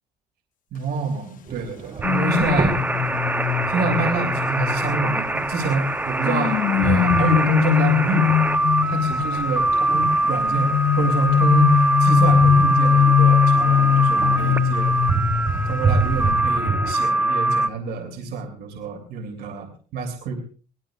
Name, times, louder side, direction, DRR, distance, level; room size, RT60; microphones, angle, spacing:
voice 1, 0.7-2.8 3.7-8.3 8.9-14.9 15.6-20.4, right 4 dB, 70° right, 3 dB, 3.2 m, -27 dB
sound 1, 1.5-16.9, right 4 dB, 40° right, 2.3 m, -30 dB
sound 2, 2.0-5.6 6.2-9.5 10.5-15.8 16.0-16.3, left 9 dB, 50° left, 0.9 m, -21 dB
sound 3, 2.0-17.7, right 2 dB, 10° right, 0.9 m, -23 dB
23.5 x 18.5 x 2.5 m, 0.38 s
cardioid pair, 110°, 17 cm